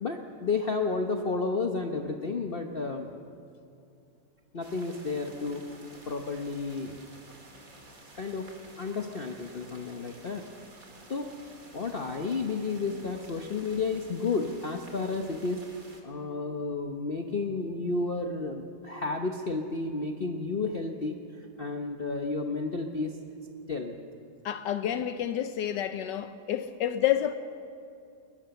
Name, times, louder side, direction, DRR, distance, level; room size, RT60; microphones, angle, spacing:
voice 1, 0.0-3.1 4.5-5.6 6.0-7.0 8.1-10.4 11.1-11.3 11.7-15.6 16.0-23.2 23.7-24.0, left 3 dB, 40° left, 1.0 m, -32 dB
sound 1, 4.6-16.0, right 2 dB, 50° right, 2.8 m, -52 dB
voice 2, 24.4-27.4, left 11 dB, 80° left, 1.3 m, -29 dB
20.5 x 20.5 x 7.0 m
omnidirectional pair, 1.9 m